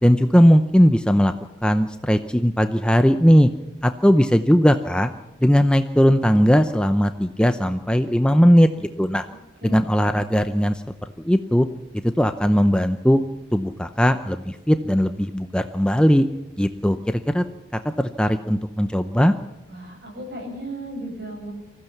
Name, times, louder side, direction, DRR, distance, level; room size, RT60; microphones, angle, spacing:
voice 1, 0.0-1.3 1.6-3.5 3.8-5.1 5.4-9.3 9.6-11.7 12.2-13.2 13.5-16.2 16.6-17.4 17.7-19.3, equal, 5° left, 8 dB, 0.7 m, -18 dB
voice 2, 19.7-21.5, right 1 dB, 55° right, 1 dB, 7.6 m, -35 dB
25.0 x 15.5 x 7.2 m, 1.1 s
head